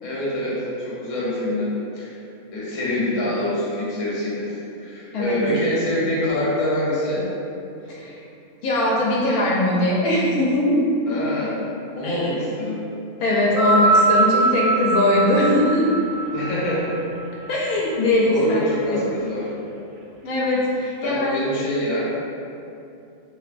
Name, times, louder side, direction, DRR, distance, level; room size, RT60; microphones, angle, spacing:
voice 1, 0.0-2.1 2.5-7.3 11.1-11.6 11.9-12.8 16.3-17.0 18.2-19.5 21.0-22.1, left 1 dB, 60° left, -7 dB, 1.1 m, -25 dB
voice 2, 8.6-10.9 12.0-12.2 13.2-15.9 17.5-19.0 20.2-21.3, left 1 dB, 85° left, -5 dB, 1.1 m, -21 dB
sound 1, 13.4-18.0 18.9-19.0, right 3 dB, 65° right, 0.8 m, -21 dB
3.0 x 3.0 x 2.5 m, 2.7 s
omnidirectional pair, 1.5 m